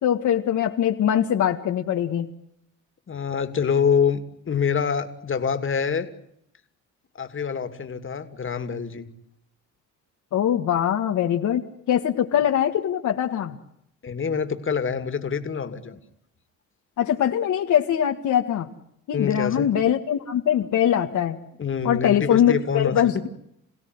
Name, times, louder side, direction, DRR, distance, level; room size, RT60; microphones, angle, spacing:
voice 1, 0.0-2.3 10.3-11.6 11.9-13.6 17.0-18.7 19.1-21.4 21.8-23.3, left 10 dB, 75° left, 3 dB, 1.9 m, -22 dB
voice 2, 3.1-6.1 7.1-9.1 14.0-16.0 19.1-19.7 21.6-23.0, left 6 dB, 40° left, 9 dB, 2.7 m, -26 dB
28.0 x 16.5 x 9.6 m, 0.78 s
cardioid pair, 90°, 30 cm